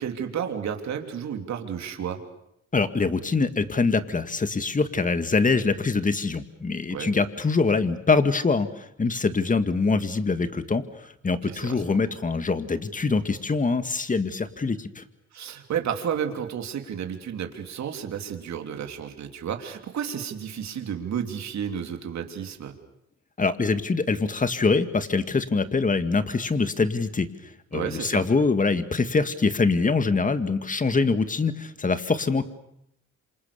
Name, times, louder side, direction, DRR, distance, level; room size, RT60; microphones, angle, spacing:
voice 1, 0.0-2.2 6.9-7.1 11.4-11.8 15.3-22.7 27.7-28.2, right 8 dB, 65° right, 4 dB, 3.3 m, -32 dB
voice 2, 2.7-15.0 23.4-27.3 27.7-32.4, left 4 dB, 25° left, 10 dB, 2.1 m, -24 dB
27.5 x 26.5 x 7.0 m, 0.77 s
cardioid pair, 90°, 30 cm